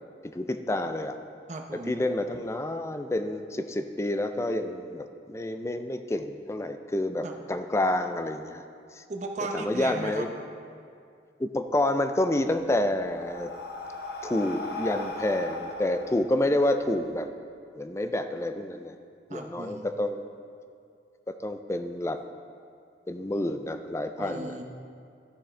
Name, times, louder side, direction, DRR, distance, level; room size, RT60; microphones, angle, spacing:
voice 1, 0.3-1.2 1.9-8.6 9.0-9.1 9.5-10.3 11.4-13.5 14.2-17.3 17.7-18.9 19.3-20.3 21.3-22.2 23.1-24.6, left 1 dB, 15° left, 8 dB, 0.3 m, -28 dB
voice 2, 1.5-2.0 7.2-7.4 9.1-10.3 19.3-19.9 24.2-24.6, right 2 dB, 40° right, 3 dB, 0.7 m, -36 dB
Breathing, 12.4-17.1, left 3 dB, 65° left, 0.8 m, -38 dB
13.5 x 6.2 x 3.3 m, 2.4 s
head